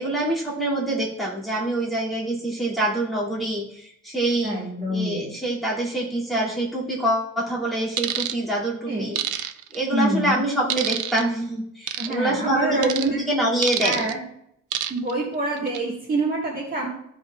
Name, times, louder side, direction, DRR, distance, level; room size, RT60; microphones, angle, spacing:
voice 1, 0.0-4.6 4.9-9.2 9.7-14.0, right 1 dB, ahead, -7 dB, 2.4 m, -25 dB
voice 2, 4.4-5.2 8.9-9.1 9.9-10.4 12.0-13.2 13.8-14.2 14.9-16.9, right 2 dB, 25° right, -4 dB, 1.6 m, -26 dB
sound 1, 8.0-8.4 9.2-9.8 10.7-11.2 11.9-12.1 12.8-13.1 13.6-14.1 14.7-15.1 15.6-15.8, right 11 dB, 65° right, 0.6 m, -27 dB
14.0 x 5.3 x 2.4 m, 0.74 s
cardioid pair, 165°, 32 cm